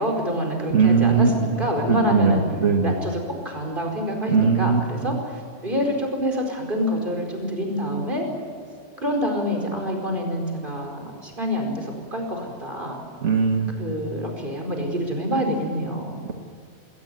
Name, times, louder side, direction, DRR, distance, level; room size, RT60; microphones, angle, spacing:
voice 1, 0.0-2.4 2.8-8.3 9.0-13.0 13.8-16.2, equal, 45° right, 2 dB, 5.0 m, -26 dB
voice 2, 0.7-1.6 1.9-2.9 4.3-4.8 5.1-5.2 13.2-13.7, right 5 dB, 80° right, 4 dB, 1.8 m, -20 dB
20.5 x 19.0 x 9.3 m, 2.3 s
omnidirectional pair, 1.2 m